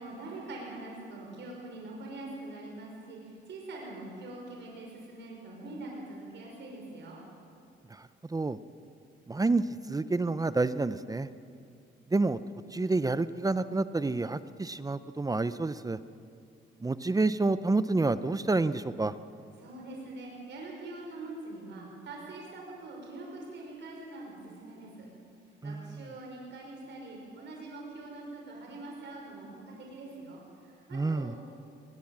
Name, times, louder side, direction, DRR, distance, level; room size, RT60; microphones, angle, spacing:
voice 1, 0.0-7.2 19.6-25.1 25.6-31.4, right 2 dB, 65° right, -1 dB, 5.9 m, -44 dB
voice 2, 9.3-11.3 12.1-12.4 12.7-16.0 16.8-19.1 25.6-26.0 30.9-31.4, right 3 dB, 20° right, 13 dB, 0.7 m, -29 dB
21.5 x 20.5 x 7.5 m, 2.4 s
cardioid pair, 90°, 20 cm